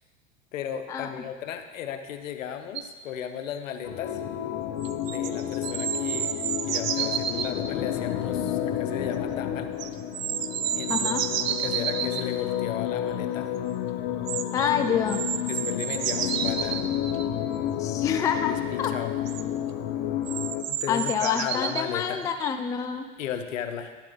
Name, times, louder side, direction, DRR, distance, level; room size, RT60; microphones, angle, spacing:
voice 1, 0.5-4.2 5.0-6.4 6.7-9.7 10.8-13.5 14.7-15.0 15.5-16.9 18.5-19.2 20.7-22.3 23.2-23.9, left 8 dB, 80° left, 8 dB, 0.9 m, -35 dB
sound 1, 2.8-2.9 4.8-7.5 9.8-12.2 14.3-14.7 15.1-17.2 18.8-18.9 19.3-19.4 20.3-21.9 22.4-22.5, right 10 dB, 90° right, 0.6 m, -30 dB
sound 2, 3.8-20.6, left 10 dB, 50° left, 0.9 m, -30 dB
voice 2, 10.9-11.2 14.5-15.2 17.8-18.9 20.9-23.1, left 7 dB, 10° left, 7 dB, 0.3 m, -27 dB
10.5 x 7.4 x 3.8 m, 1.4 s
hypercardioid pair, 95°, 38 cm